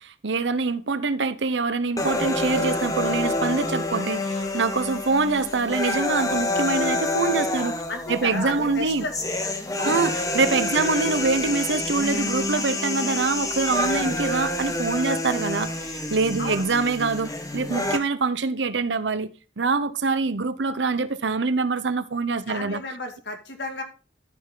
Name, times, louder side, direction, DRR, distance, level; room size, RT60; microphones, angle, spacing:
voice 1, 0.0-7.7 8.1-9.1 9.8-19.3 19.6-22.8, right 4 dB, 75° right, 0.8 m, -25 dB
sound 1, 2.0-18.0, left 2 dB, 20° left, 1.2 m, -28 dB
voice 2, 7.9-9.1 9.8-10.0 10.7-10.9 16.4-16.7 22.5-23.8, left 2 dB, 70° left, 2.0 m, -33 dB
13.0 x 5.7 x 3.8 m
head